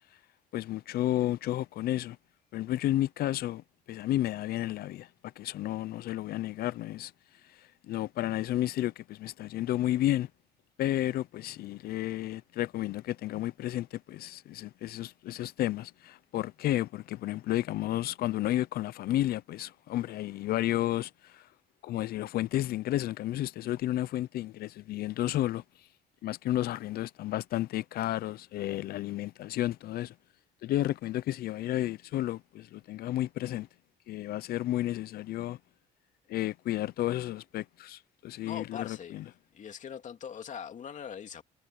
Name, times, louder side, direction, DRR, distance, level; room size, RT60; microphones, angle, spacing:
voice 1, 0.5-2.2 2.5-5.1 5.4-7.1 7.5-10.3 10.8-21.5 21.8-25.9 26.2-30.1 30.6-33.7 34.1-35.6 36.3-39.2, left 14 dB, 65° left, 0.6 m, -32 dB
voice 2, 38.5-39.2 39.5-41.4, left 8 dB, 45° left, 2.7 m, -41 dB
cardioid pair, 110°, 17 cm